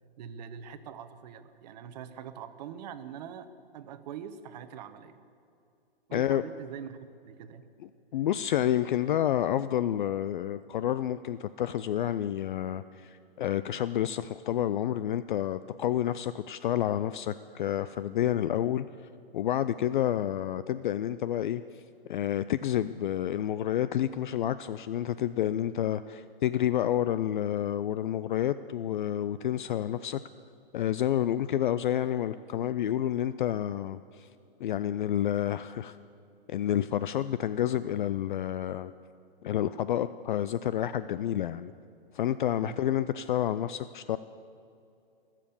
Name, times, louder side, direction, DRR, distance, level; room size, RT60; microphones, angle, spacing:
voice 1, 0.2-5.2 6.1-7.7 42.6-42.8, right 8 dB, 45° right, 11 dB, 1.0 m, -43 dB
voice 2, 6.1-6.4 8.1-18.9 19.3-21.8 22.1-30.2 30.7-34.3 34.6-36.0 36.5-38.9 39.4-41.7 42.1-44.2, left 11 dB, 55° left, 14 dB, 0.4 m, -29 dB
22.0 x 7.5 x 7.1 m, 2.6 s
hypercardioid pair, 140°, 30 cm